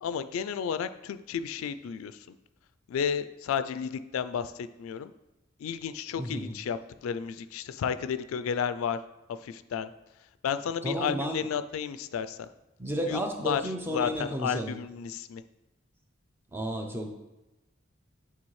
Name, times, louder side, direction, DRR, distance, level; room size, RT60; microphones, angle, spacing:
voice 1, 0.0-2.4 2.9-5.1 5.6-9.0 9.3-9.9 10.4-12.5 13.0-13.2 13.4-13.6 13.9-15.4, left 7 dB, 85° left, 12 dB, 0.3 m, -32 dB
voice 2, 6.2-6.5 10.8-11.4 12.8-14.8 16.5-17.1, equal, 10° right, 4 dB, 0.5 m, -32 dB
8.7 x 3.7 x 3.1 m, 0.98 s
head